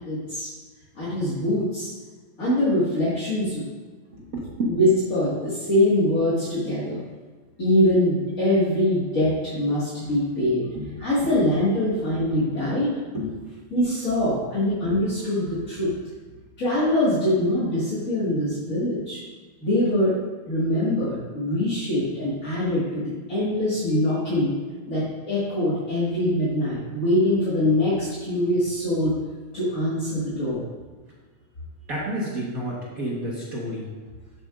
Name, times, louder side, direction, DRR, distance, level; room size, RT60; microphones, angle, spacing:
voice 1, 0.1-0.5 1.0-1.9 2.4-3.6 4.7-7.0 7.6-10.7 11.0-13.0 13.7-15.9 16.6-19.2 19.6-20.1 20.5-24.5 24.9-29.1 29.5-30.6, left 1 dB, 35° left, -9 dB, 1.7 m, -23 dB
voice 2, 4.1-4.8 10.7-10.9 11.2-11.3 13.1-13.6 15.5-15.6 31.9-33.9, right 1 dB, 50° right, -5 dB, 1.1 m, -30 dB
11.5 x 7.9 x 2.5 m, 1.4 s
omnidirectional pair, 3.3 m